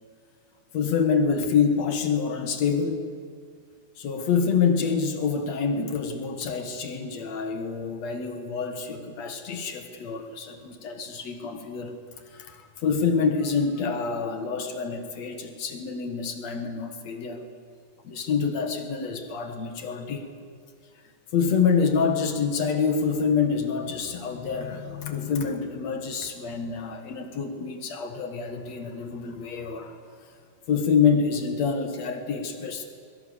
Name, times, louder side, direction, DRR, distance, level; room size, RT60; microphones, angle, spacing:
voice 1, 0.7-3.0 4.0-11.9 12.3-17.4 18.0-20.3 21.3-30.0 30.7-32.8, left 6 dB, 60° left, 6 dB, 1.9 m, -27 dB
23.5 x 22.5 x 7.1 m, 2.3 s
omnidirectional pair, 5.1 m